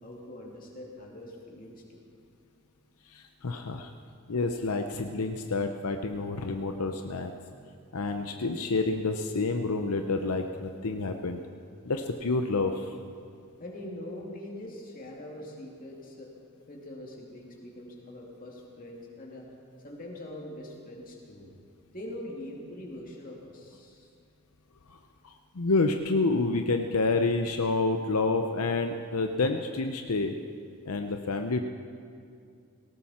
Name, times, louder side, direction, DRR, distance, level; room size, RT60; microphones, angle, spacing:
voice 1, 0.0-2.0 13.6-16.3 16.7-19.5 19.8-21.5 21.9-24.1, left 1 dB, 40° left, -1 dB, 2.5 m, -43 dB
voice 2, 3.1-3.9 4.3-7.3 7.9-11.4 11.8-13.0 24.9-30.3 30.9-31.6, left 3 dB, 80° left, 5 dB, 0.7 m, -29 dB
18.5 x 17.5 x 4.3 m, 2.4 s
head